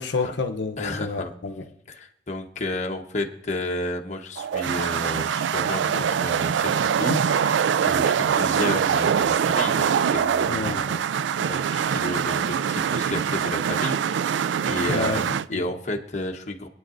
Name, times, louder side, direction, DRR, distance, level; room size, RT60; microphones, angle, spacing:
voice 1, 0.0-1.7 10.5-10.9 14.9-15.2 15.5-15.7, left 3 dB, 80° left, 0.7 m, -29 dB
voice 2, 0.8-1.3 1.9-11.0 11.4-16.7, left 2 dB, 40° left, 1.0 m, -32 dB
sound 1, 4.4-15.4, right 7 dB, 85° right, 0.3 m, -23 dB
25.5 x 9.2 x 2.6 m
head